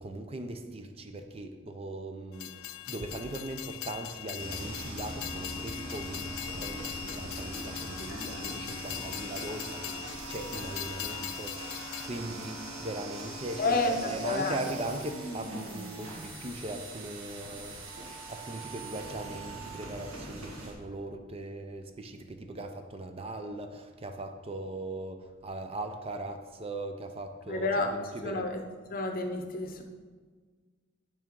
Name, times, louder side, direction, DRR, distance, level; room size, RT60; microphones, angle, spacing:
voice 1, 0.0-17.8 18.3-27.7 28.1-28.5, right 2 dB, 30° right, 6 dB, 0.5 m, -39 dB
Train, 2.3-12.1, left 14 dB, 70° left, 0.3 m, -41 dB
sound 1, 4.4-20.7, right 1 dB, 85° right, 1.6 m, -41 dB
voice 2, 8.1-8.6 13.6-14.6 27.5-27.9 28.2-28.6 28.9-29.8, left 2 dB, 45° left, 5 dB, 0.7 m, -30 dB
9.2 x 3.6 x 5.3 m, 1.5 s
head